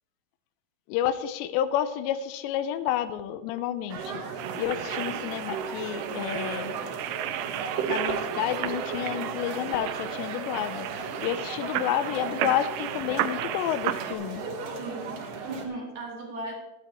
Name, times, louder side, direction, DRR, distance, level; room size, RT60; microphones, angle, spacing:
voice 1, 0.9-4.2 4.6-6.7 7.9-14.4, left 11 dB, 85° left, 12 dB, 2.9 m, -30 dB
sound 1, 3.9-15.7, right 5 dB, 70° right, 3.2 m, -35 dB
sound 2, 4.4-14.1, right 13 dB, 85° right, 2.8 m, -35 dB
voice 2, 14.7-16.5, right 2 dB, 50° right, -2 dB, 2.5 m, -37 dB
15.5 x 11.5 x 3.1 m, 1.2 s
omnidirectional pair, 5.1 m